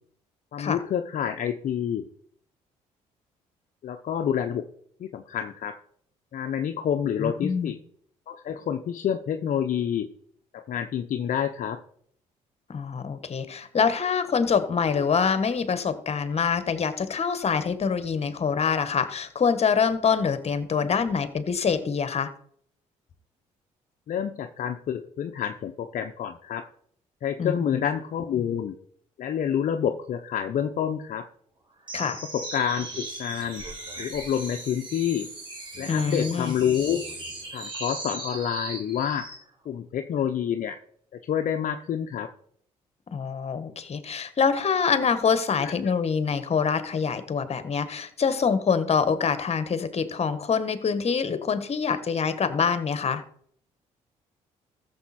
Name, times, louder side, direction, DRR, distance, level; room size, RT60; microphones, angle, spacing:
voice 1, 0.5-2.1 3.8-4.7 5.0-5.8 6.3-7.8 8.3-10.1 10.5-11.8 14.9-15.0 24.1-26.7 27.2-28.7 29.2-31.3 32.0-33.6 34.0-35.3 35.8-37.0 37.5-39.3 39.7-40.8 41.1-42.3 45.5-45.9 51.9-52.0, left 9 dB, 60° left, 7 dB, 0.8 m, -28 dB
voice 2, 7.2-7.7 12.7-22.3 27.4-27.8 31.9-32.2 35.9-36.5 43.1-53.2, left 6 dB, 45° left, 12 dB, 1.4 m, -25 dB
sound 1, 31.9-39.4, right 2 dB, 30° right, 4.2 m, -38 dB
14.0 x 7.1 x 4.3 m, 0.63 s
supercardioid pair, 60°, 15 cm